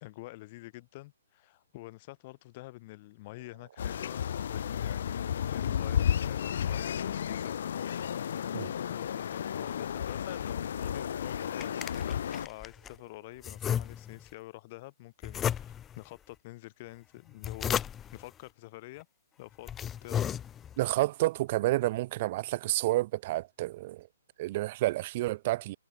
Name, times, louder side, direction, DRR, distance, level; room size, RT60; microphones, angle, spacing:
voice 1, 0.0-7.9 8.9-17.8 18.1-19.1 19.4-19.7 20.0-20.3, left 20 dB, 40° left, 1.6 m, -47 dB
sound 1, 3.4-13.5, right 9 dB, 60° right, 3.4 m, -60 dB
sound 2, 3.8-12.5, left 9 dB, 60° left, 0.6 m, -32 dB
sound 3, 11.2-13.0 13.4-14.3 15.2-16.0 17.2-18.2 19.0-19.1 19.5-20.9, left 9 dB, 15° left, 0.9 m, -34 dB
voice 2, 20.8-24.1 24.4-25.8, right 17 dB, 40° right, 0.3 m, -30 dB
hypercardioid pair, 140°, 0 cm